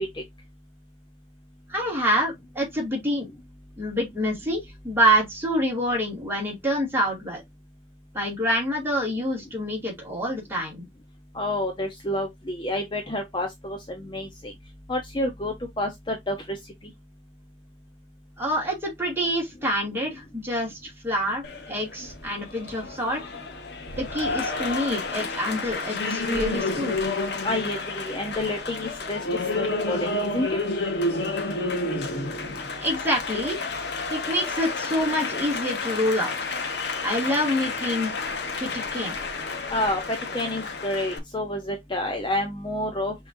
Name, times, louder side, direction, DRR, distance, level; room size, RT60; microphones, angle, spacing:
voice 1, 1.7-3.3 3.8-7.4 8.1-10.8 18.4-23.2 24.0-27.0 32.4-33.6 34.1-36.3 37.0-38.1 38.6-39.2, equal, 15° right, 2.2 m, -26 dB
voice 2, 11.3-14.5 14.9-16.6 27.4-29.2 29.5-30.0 30.3-30.5 39.7-43.1, left 1 dB, 25° left, 0.7 m, -29 dB
Applause, 21.4-41.2, left 3 dB, 65° left, 0.9 m, -30 dB
5.7 x 3.1 x 2.6 m
head